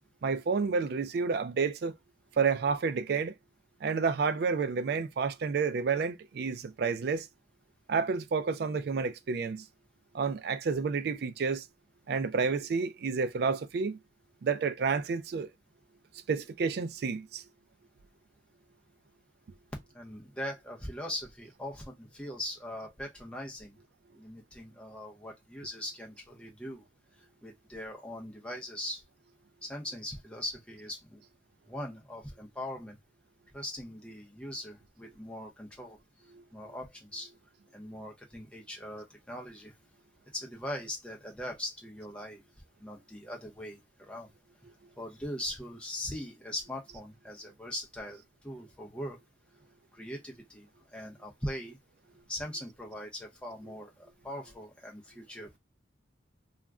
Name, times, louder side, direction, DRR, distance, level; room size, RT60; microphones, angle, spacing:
voice 1, 0.2-1.9 2.4-3.3 3.8-7.3 7.9-9.6 10.1-11.7 12.1-14.0 14.4-15.5 16.3-17.4 36.3-36.4, right 5 dB, 55° right, 0.3 m, -30 dB
voice 2, 19.9-23.8 24.1-26.8 27.4-29.0 29.6-31.2 31.7-33.0 33.5-36.0 36.5-37.3 37.7-39.7 40.3-42.4 42.8-44.3 45.0-49.2 49.9-51.8 52.3-55.6, left 1 dB, 5° left, 0.6 m, -41 dB
2.4 x 2.1 x 3.4 m
head